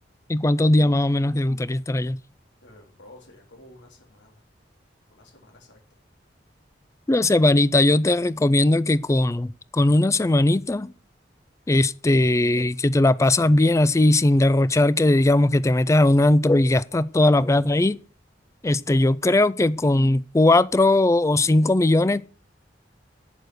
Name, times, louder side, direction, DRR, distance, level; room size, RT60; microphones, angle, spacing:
voice 1, 0.3-2.2 7.1-10.9 11.7-18.0 18.6-22.3, left 2 dB, 15° left, 0.4 m, -19 dB
voice 2, 2.6-4.4 5.1-5.8, left 1 dB, 90° left, 3.6 m, -50 dB
8.1 x 6.7 x 6.3 m
head